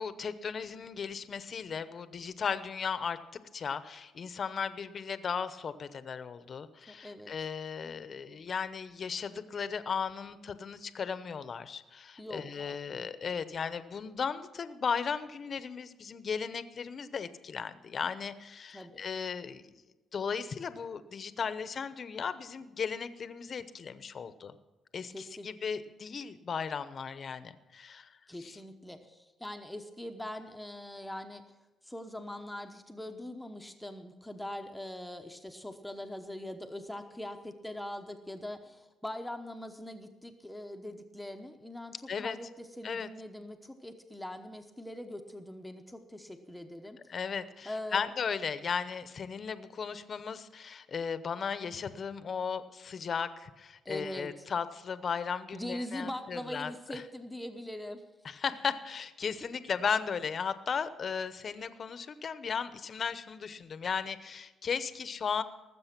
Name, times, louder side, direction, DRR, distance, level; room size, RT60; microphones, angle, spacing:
voice 1, 0.0-19.7 20.1-24.5 24.9-28.6 42.1-42.4 42.8-43.1 47.1-57.0 58.2-65.4, left 6 dB, 50° left, 13 dB, 0.8 m, -36 dB
voice 2, 6.9-7.3 12.2-12.8 18.7-19.0 25.1-25.5 28.3-31.4 31.8-47.0 47.6-48.1 53.8-54.5 55.5-58.0, left 1 dB, 5° left, 5 dB, 1.0 m, -42 dB
19.0 x 7.6 x 6.0 m, 1.1 s
cardioid pair, 90°, 0 cm